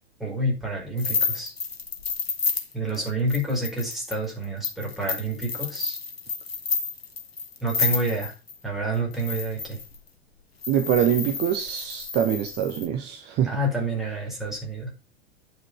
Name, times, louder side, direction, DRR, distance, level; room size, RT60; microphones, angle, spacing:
voice 1, 0.2-1.5 2.7-6.0 7.6-8.3 8.6-9.8 13.4-14.9, right 1 dB, ahead, 4.9 m, -28 dB
sound 1, 1.0-8.6 9.1-10.0 10.6-12.9, left 5 dB, 75° left, 1.5 m, -30 dB
voice 2, 10.7-13.5, right 9 dB, 35° right, 1.1 m, -24 dB
9.5 x 5.9 x 5.4 m
figure-of-eight pair, 90°, 31 cm